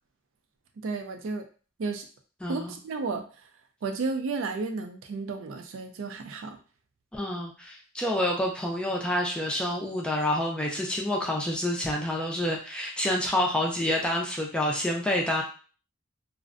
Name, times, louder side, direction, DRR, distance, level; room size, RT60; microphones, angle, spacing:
voice 1, 0.8-1.5 1.8-2.1 2.5-3.2 3.8-6.6, right 4 dB, 65° right, 7 dB, 0.4 m, -32 dB
voice 2, 2.4-2.7 7.1-15.4, left 1 dB, 5° left, -1 dB, 0.3 m, -28 dB
2.5 x 2.1 x 2.4 m, 0.38 s
head